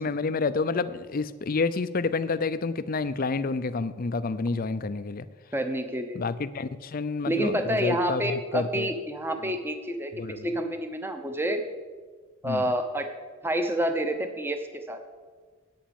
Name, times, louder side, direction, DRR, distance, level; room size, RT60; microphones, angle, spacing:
voice 1, 0.0-5.3 6.1-8.9 10.2-10.5 12.4-12.7, left 4 dB, 45° left, 13 dB, 0.5 m, -29 dB
voice 2, 5.5-6.2 7.3-10.1 10.4-11.6 12.4-13.1 13.4-15.0, right 1 dB, 10° right, 6 dB, 0.9 m, -28 dB
10.5 x 8.5 x 7.0 m, 1.4 s
head